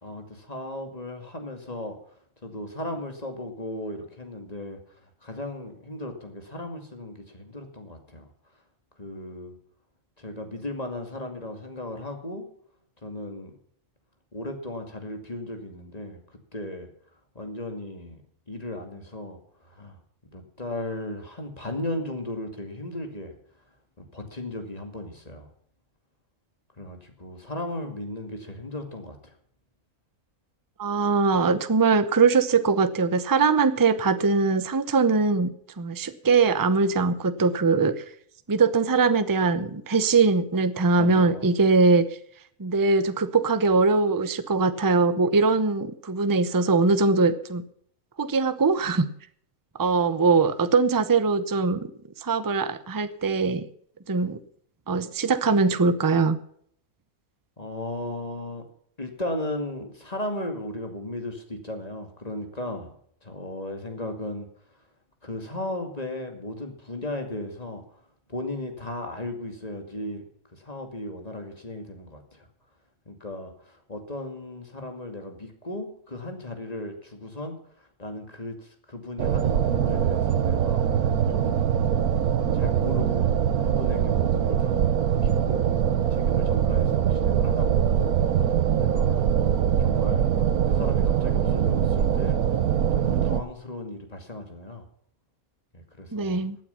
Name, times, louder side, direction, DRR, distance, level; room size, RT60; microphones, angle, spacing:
voice 1, 0.0-2.0 2.4-8.3 9.0-9.5 10.2-12.5 13.0-13.6 14.3-16.2 16.5-16.9 17.3-18.2 18.5-19.4 19.6-20.0 20.3-23.3 24.0-25.5 26.8-29.3 41.0-41.5 57.6-58.6 59.0-62.9 63.2-64.5 65.2-68.0 68.3-70.2 70.5-72.5 73.1-81.8 82.5-83.3 83.6-84.9 85.1-85.7 86.1-89.3 89.8-90.2 90.7-92.4 92.9-94.8 95.7-96.4, left 1 dB, 25° left, 5 dB, 2.4 m, -36 dB
voice 2, 30.8-35.5 35.8-38.0 38.5-42.1 42.6-47.6 48.2-49.1 49.8-51.8 52.2-53.6 54.1-54.4 54.9-56.4 96.1-96.6, right 4 dB, 20° right, 12 dB, 0.6 m, -21 dB
sound 1, 79.2-93.4, right 9 dB, 90° right, 1.4 m, -23 dB
16.5 x 9.2 x 5.7 m, 0.64 s
omnidirectional pair, 1.5 m